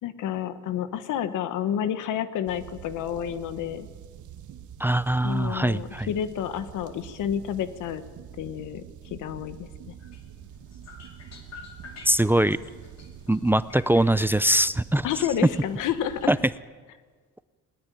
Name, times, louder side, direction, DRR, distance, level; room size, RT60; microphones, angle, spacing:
voice 1, 0.0-3.9 5.2-8.0 8.4-8.8 9.1-9.7 15.0-16.3, left 9 dB, 85° left, 12 dB, 1.4 m, -30 dB
sound 1, 2.5-16.6, right 9 dB, 80° right, 1.4 m, -46 dB
voice 2, 4.8-6.1 12.1-12.6 13.3-15.1 16.3-16.4, right 1 dB, 5° right, 15 dB, 0.6 m, -22 dB
sound 2, 10.0-16.5, left 5 dB, 60° left, 3.5 m, -50 dB
20.5 x 19.5 x 9.2 m, 1.5 s
cardioid pair, 90°, 30 cm